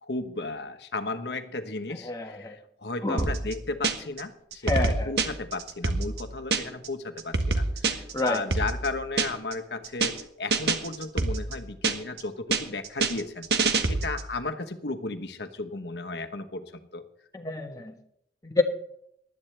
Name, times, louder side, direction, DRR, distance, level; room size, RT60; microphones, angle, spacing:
voice 1, 0.0-17.0, left 3 dB, 70° left, 9 dB, 1.2 m, -35 dB
voice 2, 2.0-2.6 3.0-3.3 4.6-5.1 8.1-8.4 17.3-18.0 18.4-18.6, left 2 dB, 20° left, 2 dB, 1.4 m, -28 dB
sound 1, 3.2-4.2 4.5-6.9 7.2-9.5 9.8-10.2 10.5-12.2 12.5-14.3, right 3 dB, 65° right, 1.4 m, -26 dB
19.5 x 12.5 x 3.4 m, 0.73 s
head